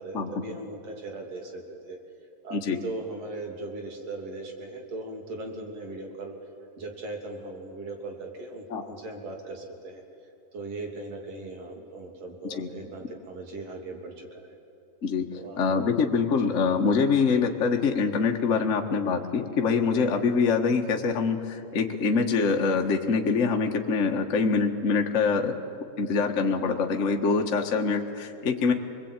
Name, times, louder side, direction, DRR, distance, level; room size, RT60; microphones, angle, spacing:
voice 1, 0.0-1.6 1.9-2.0 2.4-6.3 6.8-10.0 10.5-14.6 15.3-15.6, right 2 dB, 50° right, 2 dB, 3.8 m, -38 dB
voice 2, 15.6-25.5 26.0-28.7, left 5 dB, 40° left, 3 dB, 1.0 m, -24 dB
28.0 x 21.0 x 9.0 m, 2.7 s
omnidirectional pair, 3.8 m